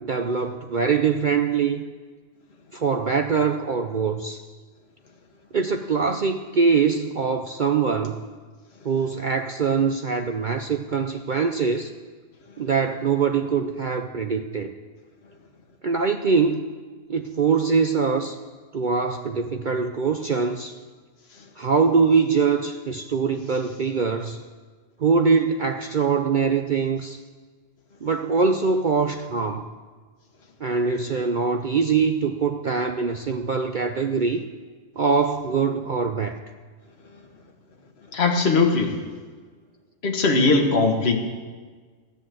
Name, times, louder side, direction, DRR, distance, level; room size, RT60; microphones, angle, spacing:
voice 1, 0.0-1.8 2.7-4.4 5.5-8.2 8.8-11.9 12.6-14.7 15.8-16.7 17.1-18.4 18.7-20.8 21.6-24.4 25.0-27.2 28.0-29.6 30.6-34.5 35.0-36.4, right 5 dB, 55° right, 6 dB, 0.5 m, -23 dB
voice 2, 38.1-38.9 40.0-41.2, left 3 dB, 45° left, 2 dB, 1.7 m, -19 dB
13.5 x 10.0 x 7.7 m, 1.5 s
omnidirectional pair, 1.5 m